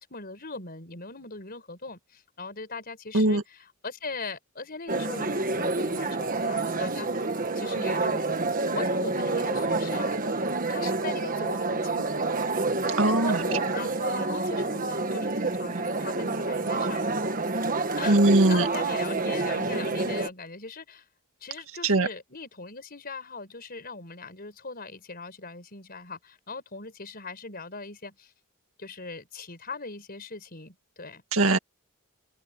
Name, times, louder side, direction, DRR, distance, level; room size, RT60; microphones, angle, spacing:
voice 1, 0.1-7.3 7.6-8.2 8.7-12.4 13.2-17.1 18.0-21.0 21.4-28.3 28.8-31.2, left 3 dB, 45° left, 5.2 m, -40 dB
sound 1, 4.9-20.3, right 3 dB, 40° right, 1.5 m, -28 dB
voice 2, 13.0-13.4 18.1-18.6 21.8-22.1 31.3-31.6, right 2 dB, 65° right, 2.0 m, -20 dB
head